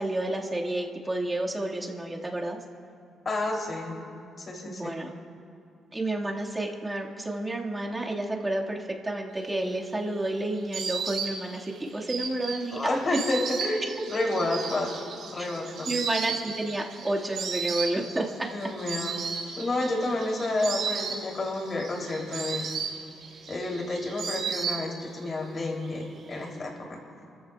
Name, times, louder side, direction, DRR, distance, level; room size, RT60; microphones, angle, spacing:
voice 1, 0.0-2.6 4.7-5.1 5.9-13.0 15.4-15.5 15.9-18.5, right 1 dB, 15° right, -2 dB, 1.9 m, -30 dB
voice 2, 3.2-4.0 4.4-5.0 12.7-14.9 15.2-15.9 18.5-22.7 23.5-27.0, left 2 dB, 40° left, -1 dB, 3.2 m, -30 dB
Insect, 9.6-25.3 25.5-26.4, right 6 dB, 75° right, 3.0 m, -35 dB
26.0 x 14.5 x 2.4 m, 2.4 s
cardioid pair, 90°, 0 cm